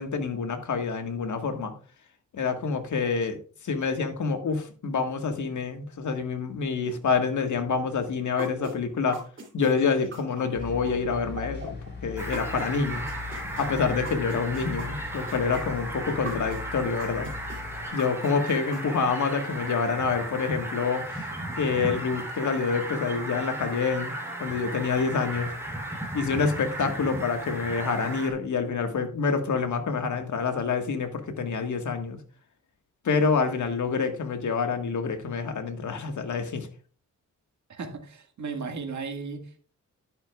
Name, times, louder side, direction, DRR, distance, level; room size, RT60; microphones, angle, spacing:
voice 1, 0.0-1.7 2.3-3.4 3.6-9.2 9.5-11.8 12.0-13.1 13.6-17.3 17.9-21.0 21.6-24.1 24.4-25.5 26.1-32.2 33.0-36.7, left 5 dB, 65° left, 6 dB, 1.7 m, -27 dB
sound 1, 8.4-12.7 13.1-16.6 17.0-18.8, right 2 dB, 40° right, 3.2 m, -39 dB
sound 2, 10.6-17.9, left 5 dB, 35° left, 4.0 m, -39 dB
Fowl, 12.2-28.3, right 1 dB, 10° right, 3.7 m, -36 dB
voice 2, 37.7-39.6, right 4 dB, 60° right, 4 dB, 1.9 m, -35 dB
11.0 x 9.9 x 2.4 m, 0.37 s
wide cardioid pair, 120°, 32 cm